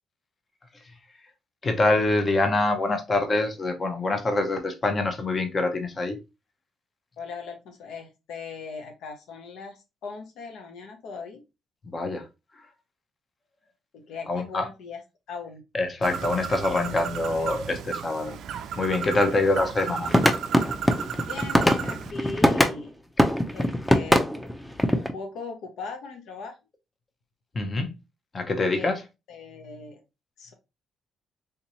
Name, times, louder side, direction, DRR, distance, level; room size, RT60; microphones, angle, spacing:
voice 1, 1.6-6.2 11.9-12.2 14.3-14.7 15.7-18.3 18.8-20.1 27.5-27.9 28.3-29.0, left 2 dB, 35° left, 0.8 m, -25 dB
voice 2, 7.2-11.4 13.9-15.0 15.3-15.6 19.0-19.3 21.3-22.9 23.5-24.3 24.9-26.5 28.7-29.0 29.3-30.0 30.4-30.5, left 4 dB, 85° left, 0.8 m, -39 dB
Bird, 16.0-22.1, right 8 dB, 75° right, 0.3 m, -34 dB
sound 1, 20.1-22.8 23.2-25.1, equal, 5° left, 0.5 m, -21 dB
3.6 x 2.8 x 2.8 m
cardioid pair, 90°, 0 cm